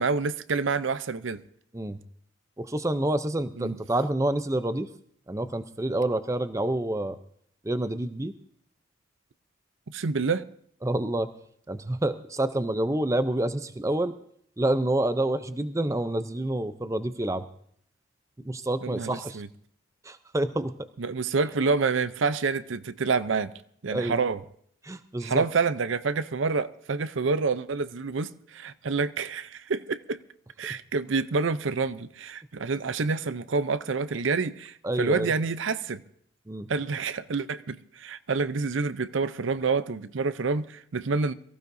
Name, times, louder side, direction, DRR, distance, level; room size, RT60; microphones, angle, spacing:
voice 1, 0.0-1.4 3.6-3.8 9.9-10.4 18.8-19.5 21.0-23.5 23.8-24.4 25.2-30.2 30.6-36.0 36.7-41.3, right 4 dB, 75° right, 0.6 m, -28 dB
voice 2, 2.6-4.9 5.3-7.2 7.6-8.3 10.8-11.3 11.7-14.1 14.6-17.4 18.5-19.4 20.1-20.7 23.9-24.2 24.8-25.4 34.8-35.3 36.5-36.7, right 1 dB, 15° right, 0.5 m, -28 dB
23.0 x 15.0 x 2.6 m
head